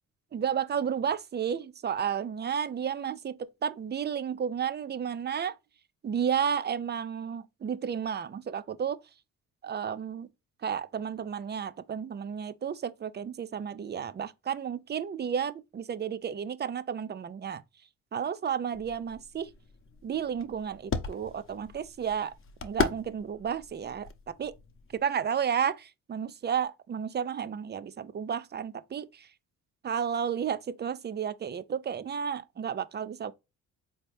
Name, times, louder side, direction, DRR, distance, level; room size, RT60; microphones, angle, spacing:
voice 1, 0.3-5.6 6.0-9.0 9.6-10.3 10.6-17.6 18.1-19.5 20.0-22.3 22.6-24.5 24.9-29.3 29.8-33.3, right 8 dB, 30° right, 0.4 m, -32 dB
sound 1, 18.7-25.0, left 5 dB, 40° left, 0.8 m, -37 dB
4.2 x 2.9 x 3.2 m
supercardioid pair, 70°, 35 cm